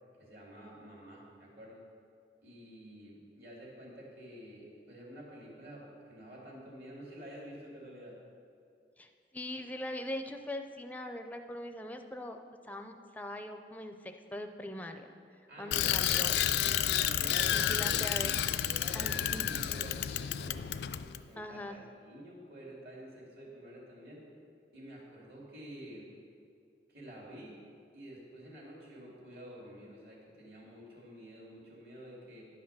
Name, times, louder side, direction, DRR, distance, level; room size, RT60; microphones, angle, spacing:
voice 1, 0.2-1.8 2.4-8.2 15.5-16.1 17.0-18.0 18.6-20.6 21.0-24.3 24.7-26.1 26.9-27.6 27.9-32.5, equal, 60° right, -4 dB, 2.7 m, -49 dB
voice 2, 9.0-12.4 12.6-15.1 15.3-16.6 17.5-18.4 18.9-19.5 21.4-21.8, left 1 dB, 10° left, 6 dB, 0.4 m, -42 dB
Bicycle, 15.7-21.2, left 11 dB, 70° left, 0.3 m, -30 dB
10.5 x 5.6 x 6.7 m, 2.3 s
head